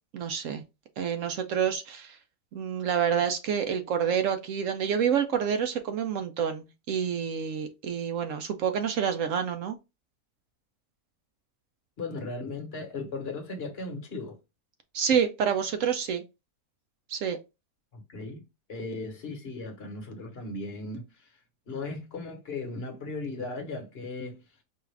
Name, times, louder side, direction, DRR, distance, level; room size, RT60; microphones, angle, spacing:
voice 1, 0.1-0.6 1.0-2.2 2.5-9.8 14.9-16.2 17.1-17.4, right 7 dB, 70° right, 0.8 m, -28 dB
voice 2, 12.0-14.4 17.9-21.3 21.7-24.4, left 3 dB, 45° left, 1.2 m, -37 dB
4.6 x 2.4 x 3.2 m
omnidirectional pair, 1.6 m